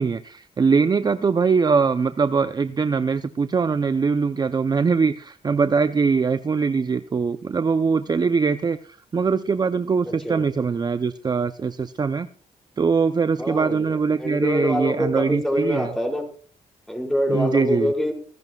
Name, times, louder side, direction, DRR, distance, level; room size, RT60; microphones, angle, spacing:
voice 1, 0.0-12.3 12.8-15.9 17.3-17.9, right 5 dB, 30° right, 10 dB, 0.6 m, -22 dB
voice 2, 10.1-10.4 13.4-16.2 16.9-18.1, left 1 dB, 5° left, 1 dB, 5.4 m, -25 dB
25.0 x 10.5 x 2.4 m, 0.42 s
cardioid pair, 90°, 13 cm